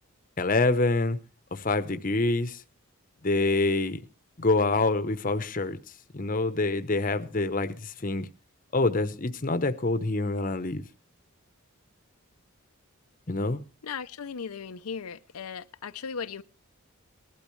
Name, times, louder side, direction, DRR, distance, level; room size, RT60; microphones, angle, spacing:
voice 1, 0.4-1.2 1.5-2.6 3.2-4.0 4.4-5.8 6.1-8.3 8.7-10.8 13.3-13.6, left 2 dB, 40° left, 0.8 m, -26 dB
voice 2, 13.8-16.4, left 6 dB, 90° left, 0.6 m, -37 dB
20.0 x 12.0 x 3.2 m
head